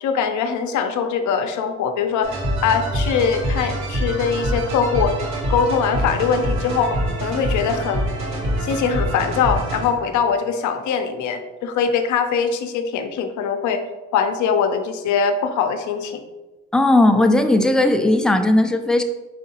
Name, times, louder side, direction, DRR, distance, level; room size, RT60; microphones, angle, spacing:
voice 1, 0.0-5.1 5.5-8.0 8.6-13.8 14.1-16.2, left 6 dB, 75° left, 6 dB, 0.6 m, -22 dB
sound 1, 2.2-10.2, equal, 65° right, 1.3 m, -25 dB
voice 2, 16.7-19.0, left 1 dB, ahead, 6 dB, 0.3 m, -16 dB
4.8 x 3.5 x 2.8 m, 1.2 s
cardioid pair, 90°, 30 cm